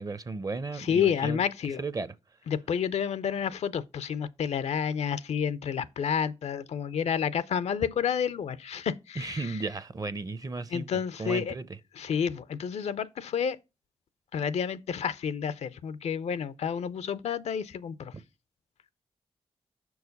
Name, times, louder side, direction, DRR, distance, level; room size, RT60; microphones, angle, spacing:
voice 1, 0.0-1.5 1.8-2.1 9.2-11.8, right 3 dB, 35° right, 0.6 m, -35 dB
voice 2, 0.8-1.8 2.5-9.6 10.7-11.5 12.0-13.6 14.3-18.1, left 7 dB, 75° left, 0.5 m, -30 dB
6.2 x 4.7 x 5.2 m
cardioid pair, 70°, 11 cm